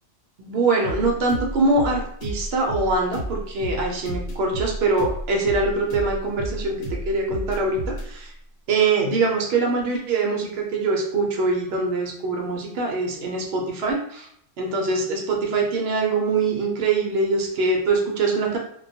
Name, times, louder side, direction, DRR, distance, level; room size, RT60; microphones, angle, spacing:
voice 1, 0.4-8.3 8.7-14.3 14.6-18.6, right 3 dB, 65° right, 0 dB, 0.7 m, -23 dB
sound 1, 0.8-8.1, equal, 70° left, 0.9 m, -31 dB
2.2 x 2.2 x 2.6 m, 0.67 s
omnidirectional pair, 1.3 m